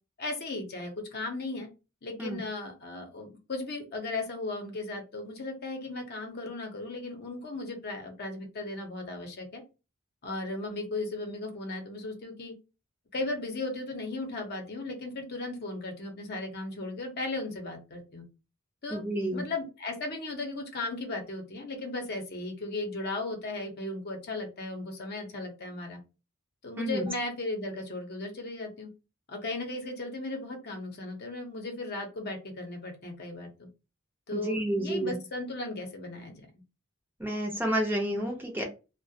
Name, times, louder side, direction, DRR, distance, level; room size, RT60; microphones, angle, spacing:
voice 1, 0.2-1.7 2.0-9.6 10.2-12.5 13.1-18.2 18.8-19.0 19.3-26.0 26.6-28.9 29.3-33.7 34.3-36.4, left 2 dB, 50° left, 3 dB, 0.7 m, -36 dB
voice 2, 18.9-19.5 26.8-27.1 34.3-35.2 37.2-38.6, right 1 dB, 10° right, 1 dB, 0.6 m, -30 dB
2.3 x 2.1 x 2.7 m, 0.29 s
head